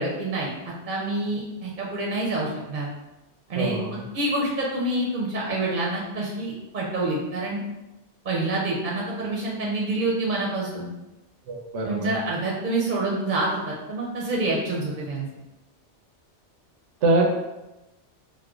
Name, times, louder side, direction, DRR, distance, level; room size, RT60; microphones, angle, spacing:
voice 1, 0.0-2.9 3.5-3.8 4.1-7.6 8.2-10.9 11.8-15.3, right 2 dB, 50° right, -3 dB, 0.6 m, -27 dB
voice 2, 3.5-4.0 11.5-12.1 17.0-17.2, right 2 dB, 90° right, 0 dB, 1.0 m, -24 dB
4.4 x 2.1 x 2.3 m, 0.99 s
omnidirectional pair, 1.2 m